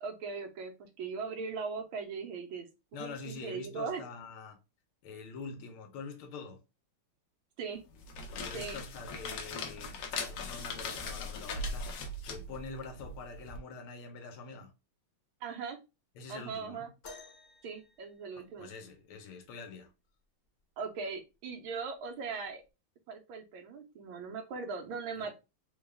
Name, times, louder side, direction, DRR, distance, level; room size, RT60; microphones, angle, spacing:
voice 1, 0.0-4.0 7.6-7.8 8.5-8.8 15.4-15.8 16.3-16.9 17.6-18.7 20.8-22.6 23.1-25.4, right 5 dB, 75° right, 1.6 m, -39 dB
voice 2, 2.9-4.6 5.0-6.6 8.3-14.7 16.2-16.9 18.4-19.9 25.2-25.3, left 4 dB, 85° left, 1.7 m, -45 dB
sound 1, 7.9-13.6, left 3 dB, 70° left, 1.3 m, -40 dB
sound 2, 17.0-18.9 20.6-20.7 21.5-21.7 22.6-22.7, left 3 dB, 50° left, 1.0 m, -53 dB
4.0 x 2.3 x 3.3 m
omnidirectional pair, 2.3 m